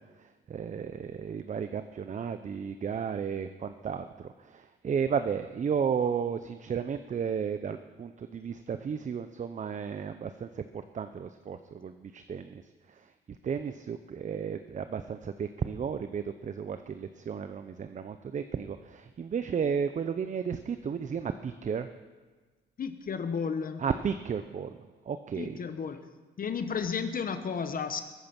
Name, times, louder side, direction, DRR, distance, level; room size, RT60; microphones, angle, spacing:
voice 1, 0.0-12.6 12.9-21.9 23.8-24.8 25.0-25.6, right 7 dB, 40° right, 10 dB, 0.7 m, -33 dB
voice 2, 22.8-23.8 25.4-26.1 26.4-28.0, left 6 dB, 45° left, 9 dB, 1.0 m, -33 dB
21.5 x 8.5 x 5.9 m, 1.4 s
cardioid pair, 90°, 20 cm